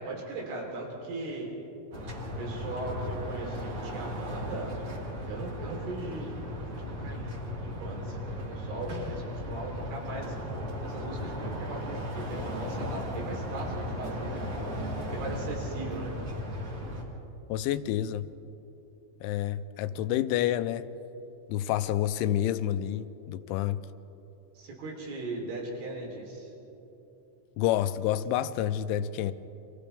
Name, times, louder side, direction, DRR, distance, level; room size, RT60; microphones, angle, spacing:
voice 1, 0.0-1.5 2.4-4.8 5.3-6.7 7.0-10.4 10.8-14.6 15.1-16.2 24.6-26.5, right 2 dB, 80° right, 6.1 m, -38 dB
sound 1, 1.9-17.0, equal, 35° right, 2.7 m, -36 dB
voice 2, 17.5-18.3 19.2-20.9 21.5-23.8 27.6-29.3, left 12 dB, 80° left, 3.0 m, -28 dB
29.5 x 25.5 x 3.5 m
omnidirectional pair, 5.6 m